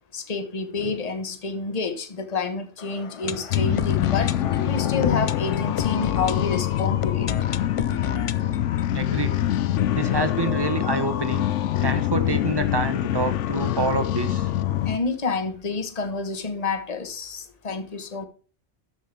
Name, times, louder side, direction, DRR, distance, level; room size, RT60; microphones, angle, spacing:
voice 1, 0.1-4.3 4.7-7.3 14.8-18.3, left 4 dB, 35° left, 1.2 m, -29 dB
sound 1, 2.8-10.5 10.8-10.9 11.1-11.2 11.7-11.8, left 7 dB, 60° left, 0.3 m, -34 dB
sound 2, 3.5-15.0, left 12 dB, 80° left, 1.0 m, -24 dB
voice 2, 8.9-9.5 9.9-11.5 11.8-14.5, right 3 dB, 20° right, 1.1 m, -27 dB
13.0 x 7.8 x 3.4 m
omnidirectional pair, 1.2 m